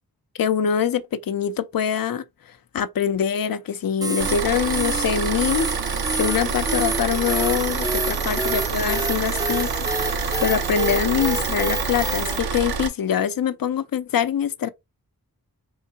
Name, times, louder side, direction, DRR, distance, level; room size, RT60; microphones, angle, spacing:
voice 1, 0.4-2.2 2.7-5.7 6.1-9.7 10.0-14.7, left 8 dB, 65° left, 0.5 m, -24 dB
sound 1, 4.0-12.4, right 2 dB, 10° right, 0.4 m, -28 dB
Car / Idling, 4.2-12.9, right 5 dB, 80° right, 0.6 m, -27 dB
3.6 x 3.2 x 2.7 m
cardioid pair, 40°, 37 cm